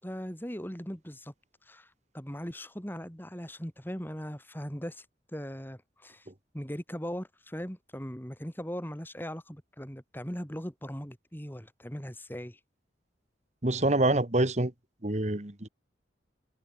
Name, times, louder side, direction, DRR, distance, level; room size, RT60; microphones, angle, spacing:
voice 1, 0.0-1.3 1.7-1.9 2.1-5.0 5.3-6.3 6.5-12.6, equal, 10° left, 4.8 m, -39 dB
voice 2, 13.6-14.7 15.0-15.7, right 2 dB, 40° right, 1.7 m, -26 dB
head